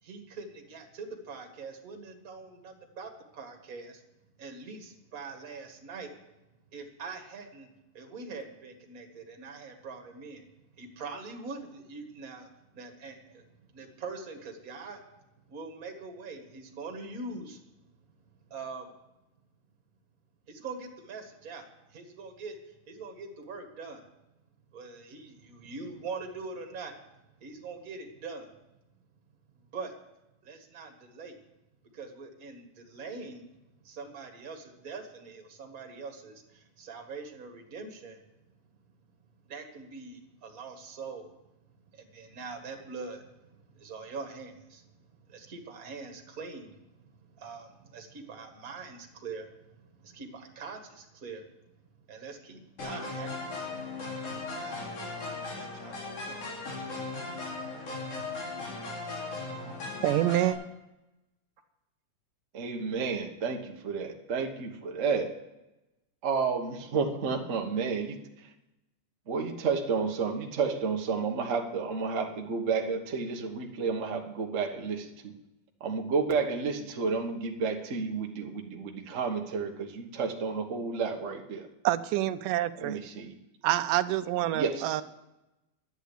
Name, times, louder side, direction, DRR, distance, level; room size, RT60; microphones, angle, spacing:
voice 1, 0.0-4.0 4.4-6.1 6.7-7.7 7.9-10.4 10.7-12.5 12.7-13.5 13.7-15.0 15.5-17.6 18.5-18.9 20.5-24.0 24.7-27.0 27.4-28.5 29.7-29.9 30.4-31.4 31.9-33.5 33.8-38.2 39.5-41.3 41.9-51.5 52.1-53.3 54.5-54.9 55.4-56.8, right 4 dB, 35° right, 3 dB, 1.8 m, -43 dB
sound 1, 52.8-60.5, left 3 dB, 70° left, 4.2 m, -37 dB
voice 2, 60.0-60.6 81.8-83.0 83.6-85.0, right 14 dB, 90° right, 12 dB, 2.3 m, -27 dB
voice 3, 62.5-65.3 66.2-68.5 69.3-75.3 75.8-81.7 82.8-83.3 84.5-84.9, right 5 dB, 60° right, 2 dB, 0.7 m, -31 dB
11.5 x 9.2 x 8.4 m, 0.97 s
omnidirectional pair, 3.7 m